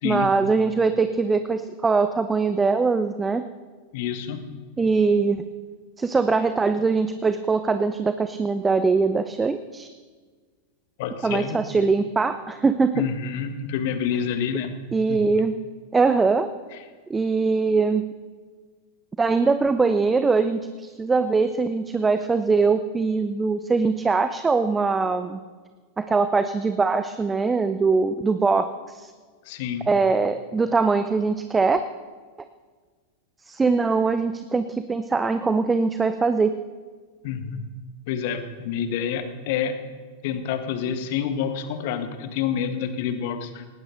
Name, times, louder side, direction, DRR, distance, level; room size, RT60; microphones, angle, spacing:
voice 1, 0.0-3.4 4.8-5.4 6.0-9.9 11.2-13.1 14.9-15.5 15.9-16.5 17.1-18.1 19.2-25.4 26.0-29.1 29.9-31.8 33.5-36.6, right 4 dB, 15° right, 10 dB, 0.7 m, -22 dB
voice 2, 3.9-4.4 11.0-11.6 12.9-14.8 15.1-15.3 29.4-29.9 37.2-37.7 38.1-39.8 40.2-43.7, left 8 dB, 50° left, 9 dB, 1.7 m, -28 dB
19.0 x 18.0 x 4.0 m, 1.5 s
figure-of-eight pair, 90°, 0 cm